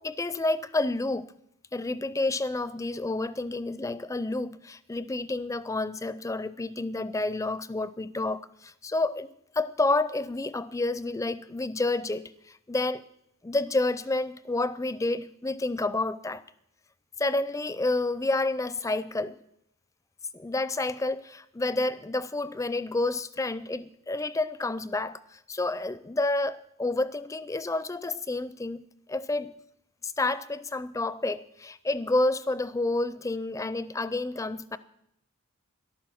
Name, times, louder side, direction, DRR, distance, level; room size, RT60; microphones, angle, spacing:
voice 1, 0.0-1.3 1.7-9.3 9.5-13.0 13.4-16.4 17.2-19.4 20.3-29.5 30.0-34.8, left 2 dB, 15° left, 16 dB, 0.4 m, -29 dB
14.0 x 11.5 x 6.3 m, 0.75 s
head